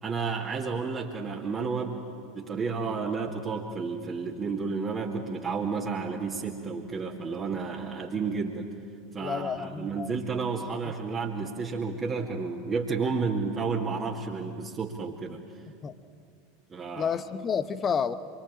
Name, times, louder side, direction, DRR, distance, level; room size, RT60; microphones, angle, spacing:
voice 1, 0.0-2.0 2.3-8.7 9.1-15.4 16.7-17.1, right 4 dB, 25° right, -3 dB, 2.4 m, -31 dB
voice 2, 9.2-10.1 15.8-15.9 17.0-18.1, left 6 dB, 25° left, 13 dB, 1.1 m, -30 dB
26.5 x 24.0 x 8.9 m, 2.4 s
figure-of-eight pair, 80°, 0 cm